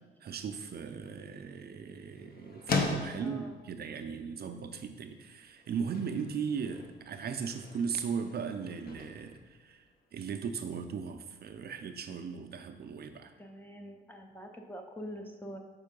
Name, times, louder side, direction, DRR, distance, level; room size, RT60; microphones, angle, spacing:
voice 1, 0.2-9.9 10.1-13.3, right 6 dB, 55° right, 7 dB, 0.4 m, -37 dB
sound 1, 0.6-10.4, left 3 dB, 50° left, 0.8 m, -40 dB
voice 2, 3.2-3.6 13.4-15.6, equal, 10° left, 3 dB, 0.5 m, -45 dB
5.3 x 3.7 x 5.2 m, 1.3 s
cardioid pair, 125°, 20 cm